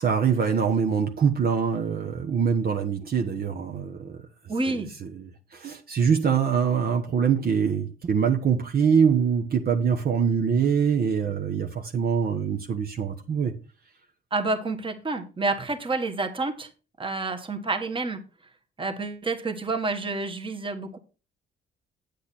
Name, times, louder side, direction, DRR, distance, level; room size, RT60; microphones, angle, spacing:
voice 1, 0.0-4.2 4.6-13.5, right 7 dB, 50° right, 1.2 m, -24 dB
voice 2, 4.5-4.9 14.3-16.7 17.0-18.2 18.8-21.0, right 3 dB, 25° right, 1.6 m, -29 dB
8.3 x 8.3 x 4.2 m
cardioid pair, 90°, 20 cm